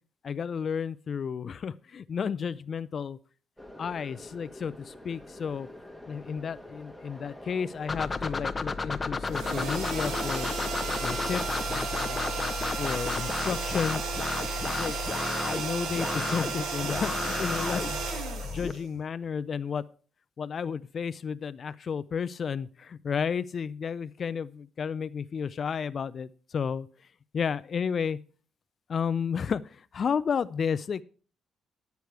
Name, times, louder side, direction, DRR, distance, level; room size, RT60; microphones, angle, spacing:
voice 1, 0.2-3.2 3.8-5.7 6.1-10.5 11.0-12.2 12.8-14.2 14.6-18.0 18.5-19.8 20.4-26.9 27.3-28.2 28.9-31.0, left 6 dB, 50° left, 15 dB, 0.4 m, -32 dB
sound 1, 3.6-12.3, left 1 dB, 5° right, 1.6 m, -46 dB
sound 2, 7.9-18.7, left 4 dB, 25° left, 0.8 m, -33 dB
sound 3, 9.3-19.2, right 5 dB, 80° right, 2.1 m, -34 dB
11.5 x 8.2 x 4.7 m, 0.39 s
cardioid pair, 90°, 0 cm